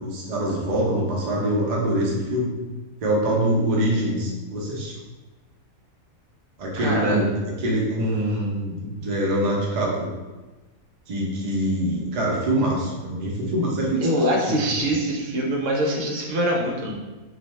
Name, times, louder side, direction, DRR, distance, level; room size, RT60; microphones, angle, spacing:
voice 1, 0.0-2.5 3.0-4.9 6.6-7.3 7.6-10.1 11.1-14.1 14.5-14.9, right 1 dB, 85° right, -3 dB, 0.3 m, -24 dB
voice 2, 6.8-7.2 14.0-16.9, equal, 65° right, -1 dB, 0.8 m, -24 dB
2.6 x 2.1 x 3.1 m, 1.2 s
omnidirectional pair, 1.5 m